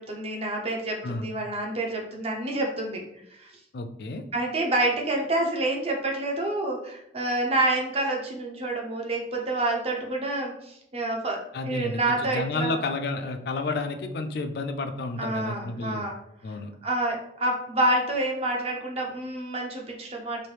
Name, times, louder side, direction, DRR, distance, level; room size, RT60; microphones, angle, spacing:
voice 1, 0.0-3.0 3.4-3.5 4.3-11.4 11.6-12.7 15.2-16.2 16.5-16.6 16.8-20.5, right 2 dB, 35° right, 0 dB, 0.6 m, -28 dB
voice 2, 3.7-4.2 11.5-16.1 16.4-16.7, left 3 dB, 60° left, 6 dB, 0.4 m, -31 dB
3.0 x 2.6 x 3.2 m, 0.78 s
head